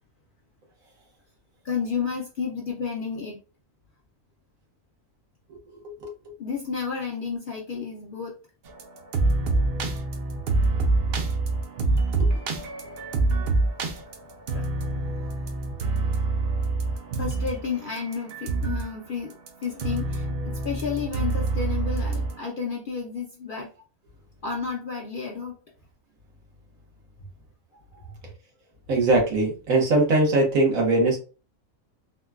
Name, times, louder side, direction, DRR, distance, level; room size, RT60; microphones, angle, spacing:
voice 1, 1.6-3.4 6.4-8.4 14.5-14.7 15.0-15.2 17.2-23.7 24.4-25.6 27.7-28.1, left 6 dB, 60° left, -1 dB, 0.5 m, -31 dB
sound 1, 8.7-18.9 19.3-22.4, right 3 dB, 60° right, 0.6 m, -26 dB
voice 2, 28.9-31.2, right 2 dB, 80° right, 0 dB, 1.4 m, -21 dB
3.7 x 2.1 x 2.3 m, 0.34 s
omnidirectional pair, 1.4 m